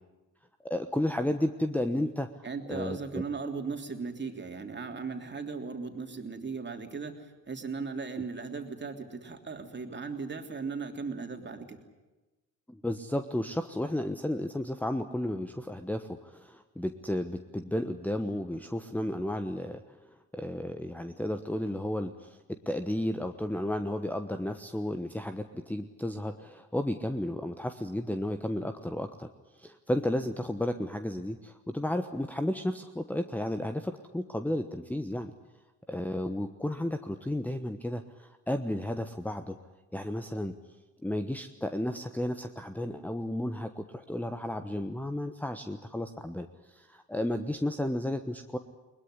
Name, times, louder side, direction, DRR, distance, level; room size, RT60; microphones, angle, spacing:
voice 1, 0.6-2.3 2.7-3.2 12.7-20.0 20.3-29.3 29.6-35.3 35.9-39.6 39.9-40.5 41.0-48.6, left 1 dB, 5° left, 8 dB, 1.2 m, -33 dB
voice 2, 2.4-11.8, right 4 dB, 25° right, 5 dB, 3.3 m, -37 dB
21.5 x 20.5 x 9.9 m, 1.2 s
hypercardioid pair, 60°, 40 cm